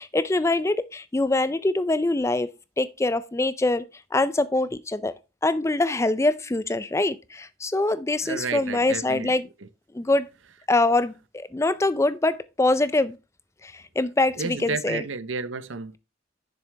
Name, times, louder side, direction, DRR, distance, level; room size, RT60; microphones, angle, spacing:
voice 1, 0.0-2.5 2.8-3.8 4.1-5.1 5.4-9.5 9.9-10.3 10.7-13.2 13.6-15.0, left 2 dB, 15° left, 0.4 m, -24 dB
voice 2, 8.2-9.3 14.4-16.0, right 4 dB, 80° right, 0.8 m, -31 dB
10.0 x 6.8 x 3.3 m
head